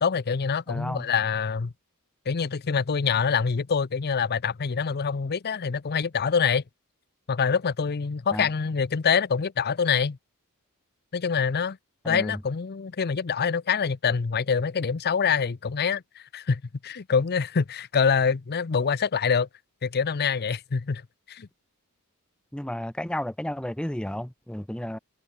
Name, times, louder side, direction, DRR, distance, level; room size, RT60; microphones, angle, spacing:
voice 1, 0.0-1.7 2.3-6.6 7.3-10.2 11.1-11.8 12.1-19.5 19.8-21.0 21.3-21.5, left 6 dB, 45° left, 0.6 m, -25 dB
voice 2, 0.7-1.1 8.3-8.5 12.0-12.4 22.5-25.0, left 1 dB, 5° left, 0.7 m, -32 dB
head